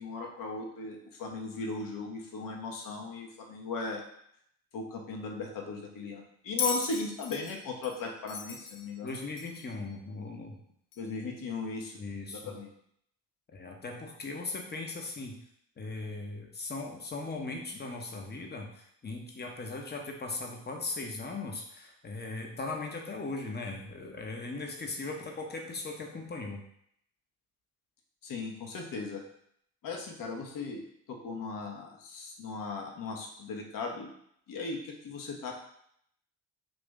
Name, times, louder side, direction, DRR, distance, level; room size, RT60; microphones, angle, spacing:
voice 1, 0.0-4.0 4.7-9.1 11.0-12.0 12.3-12.7 28.2-29.3 29.8-34.1 34.5-35.5, left 3 dB, 50° left, 1 dB, 0.9 m, -37 dB
Bell, 6.6-9.8 10.9-11.0, left 5 dB, 85° left, 0.5 m, -37 dB
voice 2, 9.0-10.6 11.9-12.6 13.5-15.4 15.8-26.6, left 3 dB, 25° left, 2 dB, 0.8 m, -38 dB
2.9 x 2.6 x 3.5 m, 0.71 s
hypercardioid pair, 50°, 41 cm